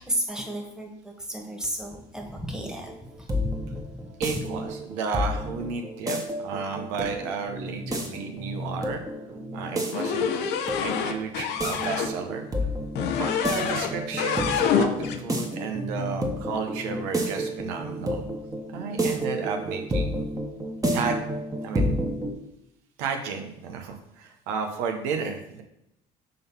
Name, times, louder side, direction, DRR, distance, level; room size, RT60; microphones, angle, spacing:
voice 1, 0.0-2.9 3.5-3.8 4.3-4.4, equal, 5° right, 1 dB, 1.6 m, -33 dB
sound 1, 2.9-22.3, equal, 20° right, 1.3 m, -31 dB
voice 2, 4.2-9.0 9.5-10.4 10.8-12.4 13.1-18.2 18.7-20.2 20.9-21.2 21.6-21.9 23.0-25.6, right 5 dB, 80° right, 5 dB, 0.9 m, -33 dB
sound 2, 9.9-12.1 12.9-13.9 14.2-15.2, left 7 dB, 70° left, 0.7 m, -26 dB
5.2 x 3.8 x 5.6 m, 0.82 s
supercardioid pair, 75°, 18 cm